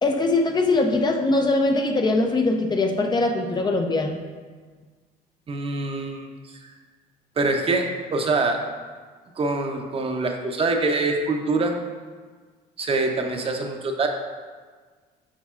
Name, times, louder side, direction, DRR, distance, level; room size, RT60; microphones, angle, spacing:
voice 1, 0.0-4.2, left 2 dB, 25° left, 4 dB, 0.4 m, -22 dB
voice 2, 5.5-6.3 7.4-8.6 9.4-11.7 12.8-14.1, right 3 dB, 35° right, 3 dB, 0.7 m, -24 dB
7.2 x 5.3 x 2.4 m, 1.5 s
cardioid pair, 110°, 17 cm